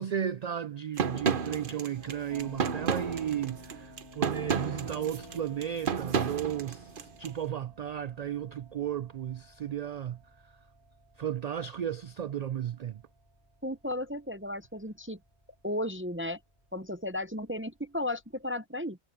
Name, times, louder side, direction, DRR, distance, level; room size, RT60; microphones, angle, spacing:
voice 1, 0.0-10.2 11.2-13.0, right 9 dB, 65° right, 0.4 m, -34 dB
sound 1, 1.0-7.3, right 6 dB, 50° right, 1.1 m, -32 dB
sound 2, 2.0-18.4, equal, 20° left, 2.0 m, -53 dB
voice 2, 13.6-15.2 15.6-16.4 16.7-19.0, left 1 dB, 15° right, 0.6 m, -34 dB
omnidirectional pair, 1.2 m